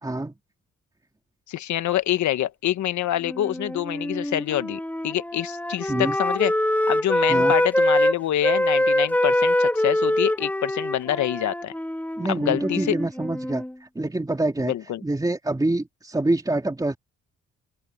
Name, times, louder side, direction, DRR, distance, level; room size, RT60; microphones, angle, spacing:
voice 1, 0.0-0.3 5.9-6.2 7.3-7.5 12.2-14.7 15.0-17.0, right 2 dB, 10° right, 2.9 m, -26 dB
voice 2, 1.5-6.5 6.9-11.7 12.3-13.0 14.6-15.0, left 12 dB, 70° left, 1.2 m, -26 dB
Wind instrument woodwind instrument, 3.2-8.1 8.4-13.7, left 1 dB, 5° left, 2.1 m, -24 dB
open air
cardioid pair, 90°, 30 cm